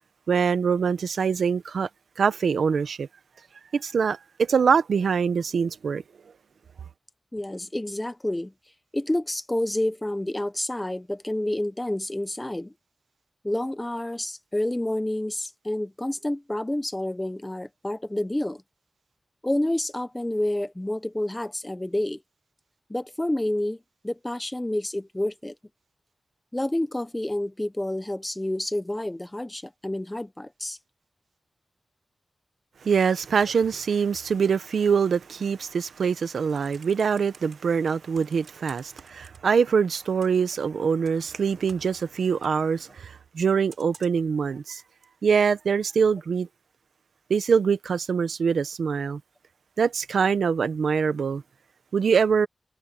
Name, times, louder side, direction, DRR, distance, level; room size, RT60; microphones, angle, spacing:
voice 1, 0.3-1.9 2.2-3.1 3.7-6.0 32.8-44.8 45.2-46.5 47.3-49.2 49.8-51.4 51.9-52.5, right 6 dB, 90° right, 0.9 m, -24 dB
voice 2, 7.3-8.5 8.9-12.7 13.4-18.6 19.4-22.2 22.9-23.8 24.0-25.5 26.5-30.8, left 1 dB, 10° left, 1.0 m, -29 dB
Computer keyboard, 36.3-37.5 38.1-39.7 39.9-40.5 41.0-42.6 43.7-44.3 45.0-45.1, right 5 dB, 65° right, 3.3 m, -51 dB
wide cardioid pair, 170°, 0 cm